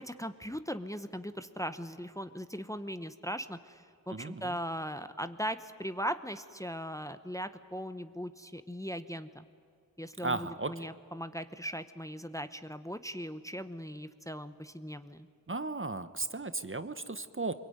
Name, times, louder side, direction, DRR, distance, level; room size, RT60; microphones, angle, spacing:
voice 1, 0.0-9.5 10.0-15.3, equal, 10° left, 10 dB, 0.9 m, -39 dB
voice 2, 4.1-4.6 10.2-10.8 15.5-17.5, right 3 dB, 35° right, 12 dB, 1.0 m, -35 dB
24.0 x 22.0 x 9.5 m, 2.3 s
wide cardioid pair, 45°, 37 cm